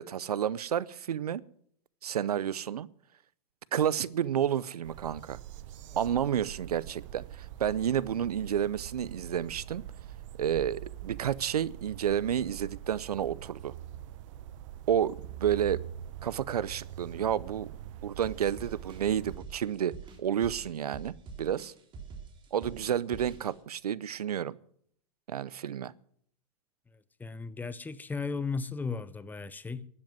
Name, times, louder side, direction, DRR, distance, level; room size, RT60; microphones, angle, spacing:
voice 1, 0.0-1.4 2.0-2.9 3.7-5.4 6.0-9.8 10.4-13.7 14.9-15.8 16.2-17.7 18.0-19.9 20.2-21.1 21.4-21.7 22.5-24.5 25.3-25.9, right 9 dB, 90° right, 0.6 m, -30 dB
sound 1, 4.8-19.4, right 11 dB, 55° right, 1.0 m, -44 dB
sound 2, 18.2-23.5, right 5 dB, 25° right, 3.1 m, -45 dB
voice 2, 27.2-29.9, left 4 dB, 10° left, 0.7 m, -35 dB
12.0 x 10.5 x 9.1 m
hypercardioid pair, 120°, 19 cm